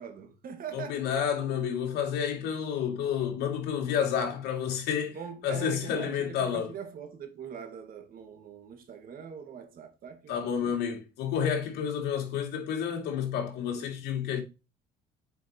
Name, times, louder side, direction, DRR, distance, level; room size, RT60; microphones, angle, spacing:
voice 1, 0.0-1.1 5.1-10.5, right 7 dB, 60° right, 1.9 m, -42 dB
voice 2, 0.7-5.2 5.4-6.7 10.3-14.4, left 8 dB, 80° left, 2.5 m, -30 dB
7.5 x 5.6 x 2.9 m
cardioid pair, 110°, 17 cm